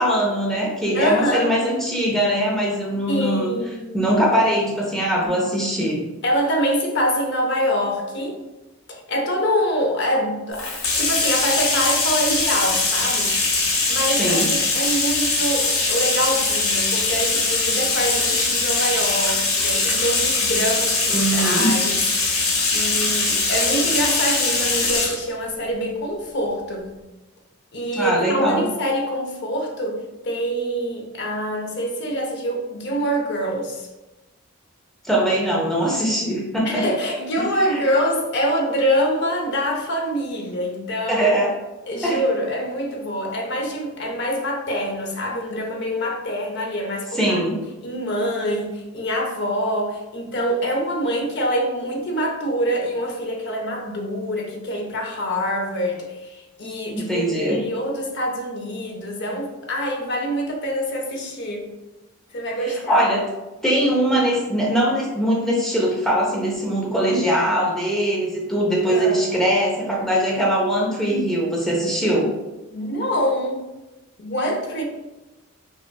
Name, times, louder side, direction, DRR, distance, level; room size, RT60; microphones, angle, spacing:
voice 1, 0.0-3.5 3.9-6.0 14.2-14.5 21.1-21.8 27.9-28.6 35.0-36.9 37.4-37.8 41.1-41.5 42.0-42.2 47.1-47.6 56.9-57.6 62.6-63.3 63.6-72.3, right 1 dB, ahead, -4 dB, 0.7 m, -21 dB
voice 2, 0.9-1.5 3.1-3.9 6.2-8.4 8.9-13.4 13.9-26.9 27.7-33.9 36.6-41.3 41.9-47.4 47.8-61.7 62.3-63.1 68.8-69.3 72.7-73.7 74.2-74.8, equal, 55° left, 1 dB, 0.6 m, -25 dB
Bathtub (filling or washing), 10.5-25.2, left 3 dB, 85° left, 0.8 m, -21 dB
4.9 x 2.5 x 2.3 m, 1.1 s
head